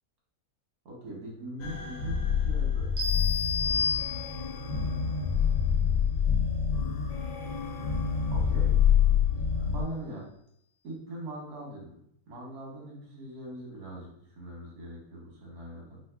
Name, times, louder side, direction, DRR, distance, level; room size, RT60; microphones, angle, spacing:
voice 1, 0.8-3.1 4.6-5.2 8.3-8.7 9.6-10.2 10.8-16.0, right 1 dB, 80° right, -3 dB, 1.5 m, -42 dB
sound 1, 1.6-9.8, left 7 dB, 80° left, 1.1 m, -27 dB
sound 2, 3.0-4.7, left 5 dB, 60° right, 1.0 m, -30 dB
4.0 x 2.2 x 2.3 m, 0.71 s
omnidirectional pair, 1.6 m